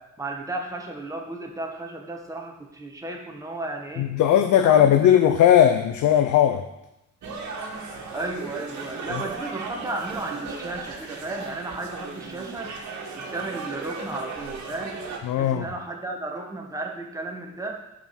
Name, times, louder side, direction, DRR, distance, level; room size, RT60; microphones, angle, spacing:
voice 1, 0.0-4.1 4.6-5.2 8.1-12.7 13.1-15.0 15.4-17.8, right 2 dB, 10° right, 1 dB, 1.4 m, -34 dB
voice 2, 4.0-6.6 15.2-15.7, left 10 dB, 75° left, 7 dB, 0.6 m, -18 dB
sound 1, 7.2-15.2, right 4 dB, 65° right, 1.7 m, -36 dB
9.0 x 5.0 x 6.0 m, 0.90 s
cardioid pair, 90°, 30 cm